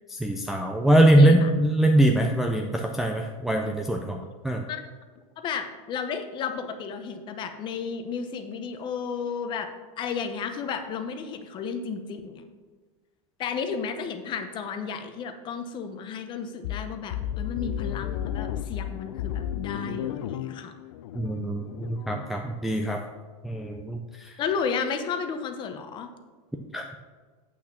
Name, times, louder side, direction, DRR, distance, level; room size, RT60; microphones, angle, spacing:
voice 1, 0.1-4.6 21.2-23.0 23.4-24.0 26.7-26.9, right 1 dB, ahead, 1 dB, 0.4 m, -22 dB
voice 2, 1.1-1.5 4.7-4.8 5.4-9.7 10.0-12.5 13.4-20.7 24.4-26.1, left 6 dB, 25° left, 8 dB, 0.8 m, -33 dB
sound 1, 16.6-22.3, left 11 dB, 70° left, 0.5 m, -33 dB
8.5 x 5.9 x 6.0 m, 1.4 s
supercardioid pair, 160°, 18 cm